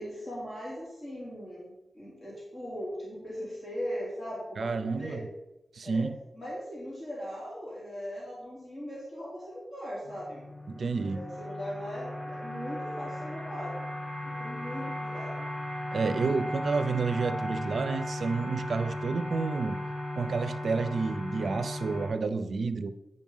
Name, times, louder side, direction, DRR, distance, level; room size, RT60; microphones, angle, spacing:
voice 1, 0.0-5.3 5.8-6.0 6.3-10.4 10.9-13.9 14.2-15.5, equal, 25° left, -7 dB, 3.6 m, -39 dB
voice 2, 4.6-5.3 5.7-6.1 10.7-11.2 15.9-19.8 20.2-22.9, right 4 dB, 65° right, 12 dB, 0.5 m, -30 dB
sound 1, 10.0-22.1, left 1 dB, ahead, 2.7 m, -36 dB
10.5 x 5.4 x 5.5 m, 0.94 s
wide cardioid pair, 120°, 0 cm